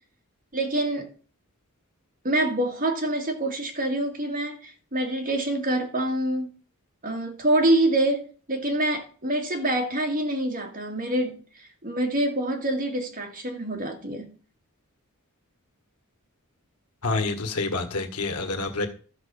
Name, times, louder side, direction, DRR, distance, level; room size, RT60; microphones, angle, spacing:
voice 1, 0.5-1.1 2.2-6.5 7.0-14.3, right 1 dB, 40° right, 2.2 m, -26 dB
voice 2, 17.0-18.9, left 3 dB, 90° left, 1.7 m, -27 dB
13.0 x 4.9 x 7.0 m
head